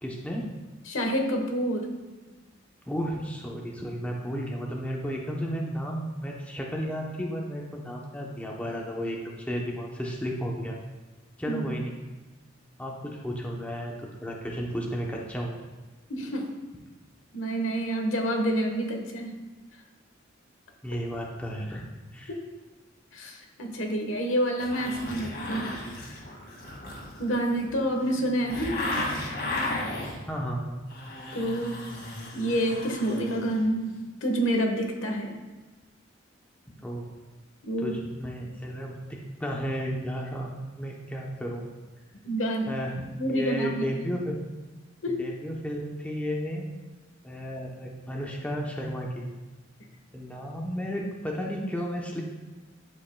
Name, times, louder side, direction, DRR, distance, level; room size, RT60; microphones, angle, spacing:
voice 1, 0.0-0.4 2.9-10.8 11.4-11.9 12.8-15.6 20.8-21.9 22.1-22.3 30.3-30.8 36.8-37.1 37.8-40.5 40.8-41.6 42.7-44.4 45.1-46.7 47.2-49.3 50.1-52.2, equal, 5° left, -2 dB, 0.8 m, -33 dB
voice 2, 0.9-1.9 11.4-11.7 16.1-16.5 17.3-19.4 23.1-25.7 27.2-28.8 31.3-31.8 32.3-35.4 37.6-37.9 42.2-42.7 43.2-43.8 45.0-45.2, right 1 dB, 80° left, 2 dB, 1.2 m, -28 dB
sound 1, 24.6-30.2 30.7-33.6 33.9-34.0, left 2 dB, 55° left, 1.9 m, -35 dB
11.5 x 5.3 x 2.3 m, 1.2 s
head